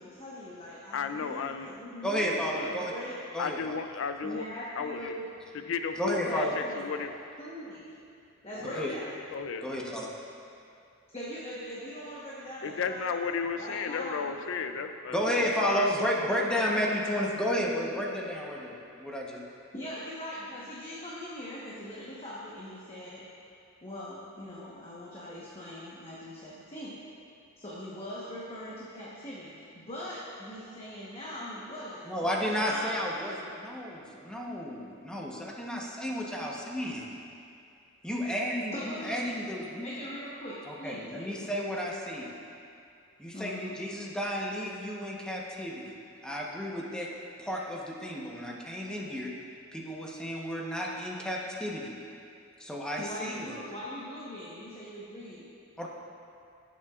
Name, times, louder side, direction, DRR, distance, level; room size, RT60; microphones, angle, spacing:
voice 1, 0.0-3.1 4.2-5.3 6.2-7.8 8.4-9.1 11.1-13.1 13.5-14.4 19.7-23.2 23.8-27.0 27.6-33.0 38.7-39.4 39.8-41.5 43.3-43.7 53.0-55.5, equal, 30° left, -7 dB, 1.2 m, -41 dB
voice 2, 0.9-1.7 2.6-2.8 3.4-4.5 4.8-5.2 5.7-7.1 8.5-8.9 9.3-9.7 12.6-15.9, left 5 dB, 65° left, 8 dB, 0.5 m, -34 dB
voice 3, 2.0-2.9 3.3-3.7 6.0-6.6 8.7-8.9 9.6-10.1 15.1-19.4 32.1-37.1 38.0-39.9 40.7-42.3 43.2-45.9 46.2-47.1 47.4-49.3 49.7-51.9 52.6-53.5 55.8-55.9, equal, 5° left, -3 dB, 1.0 m, -32 dB
17.0 x 7.3 x 2.5 m, 2.5 s
head